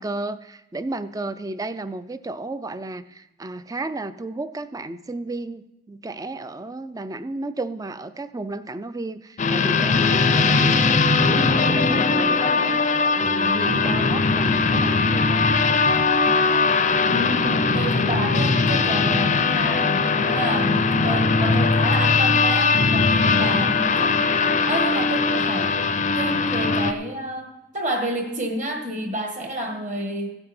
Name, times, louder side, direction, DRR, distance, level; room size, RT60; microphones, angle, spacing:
voice 1, 0.0-15.5, right 2 dB, 15° right, 13 dB, 0.4 m, -33 dB
sound 1, 9.4-26.9, left 4 dB, 35° left, 0.5 m, -20 dB
voice 2, 17.1-24.2 24.7-25.8 26.1-30.3, right 1 dB, 35° right, 4 dB, 1.7 m, -29 dB
15.5 x 8.9 x 4.3 m, 0.97 s
head